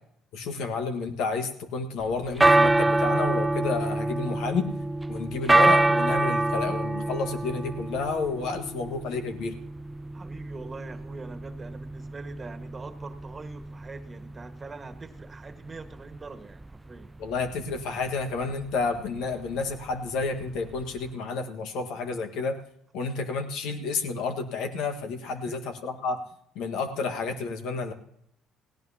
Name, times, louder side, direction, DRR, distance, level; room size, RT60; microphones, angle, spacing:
voice 1, 0.3-4.7 5.1-9.5 17.2-22.6 22.9-26.2 26.5-27.9, left 4 dB, 75° left, 6 dB, 1.5 m, -30 dB
sound 1, 2.0-21.1, right 2 dB, 15° right, 0.4 m, -27 dB
voice 2, 10.1-17.1 25.2-25.8, right 3 dB, 30° right, 7 dB, 1.5 m, -43 dB
17.5 x 17.0 x 2.8 m, 0.73 s
supercardioid pair, 65°, 0 cm